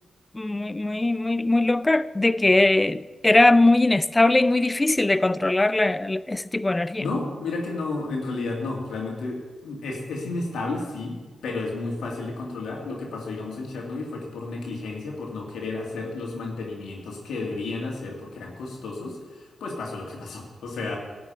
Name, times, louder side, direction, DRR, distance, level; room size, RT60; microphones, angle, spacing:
voice 1, 0.3-7.1, left 2 dB, 25° left, 0.5 m, -20 dB
voice 2, 7.0-11.2 11.4-21.0, left 3 dB, 85° left, 2.3 m, -32 dB
12.0 x 6.2 x 9.0 m
supercardioid pair, 45°, 0 cm